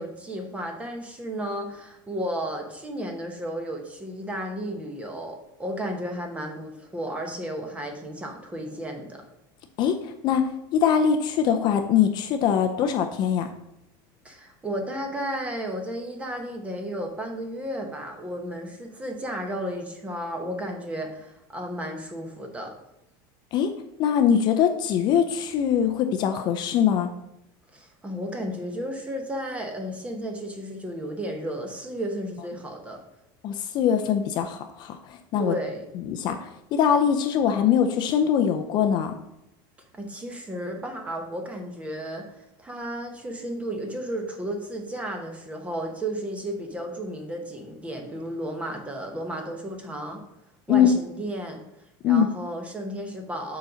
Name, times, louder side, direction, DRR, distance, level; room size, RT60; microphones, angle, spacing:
voice 1, 0.0-9.2 14.2-22.7 27.7-33.0 35.3-35.9 39.9-42.3 42.6-50.2 50.7-51.6 52.0-53.6, right 1 dB, 10° right, 3 dB, 1.0 m, -33 dB
voice 2, 9.8-10.4 10.7-13.5 23.5-23.7 24.0-27.1 33.4-35.5 35.9-39.1 50.7-50.9 52.0-52.3, left 8 dB, 40° left, 6 dB, 0.5 m, -22 dB
7.3 x 4.1 x 5.1 m, 0.85 s
supercardioid pair, 155°, 11 cm